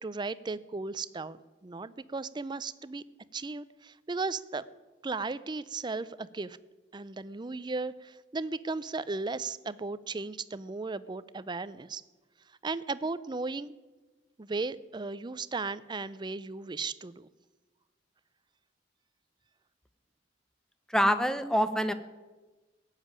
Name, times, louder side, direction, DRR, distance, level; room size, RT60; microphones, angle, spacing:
voice 1, 0.0-3.0 3.3-4.7 5.0-6.6 6.9-12.0 12.6-13.8 14.4-17.3, right 3 dB, 25° right, 17 dB, 0.5 m, -36 dB
voice 2, 20.9-21.9, equal, 5° left, 11 dB, 0.8 m, -25 dB
17.0 x 7.4 x 9.5 m, 1.2 s
head